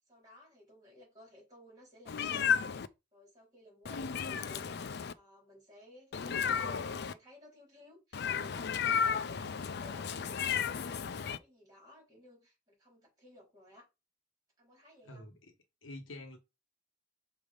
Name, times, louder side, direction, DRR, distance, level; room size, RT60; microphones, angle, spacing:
voice 1, 0.0-2.8 3.1-13.9 14.6-15.4, equal, 20° right, 4.0 m, -57 dB
Meow, 2.1-2.9 3.9-5.1 6.1-7.1 8.1-11.4, left 7 dB, 55° left, 0.4 m, -33 dB
voice 2, 15.0-15.4 15.8-16.4, left 1 dB, 75° left, 1.4 m, -46 dB
6.2 x 3.2 x 5.2 m
head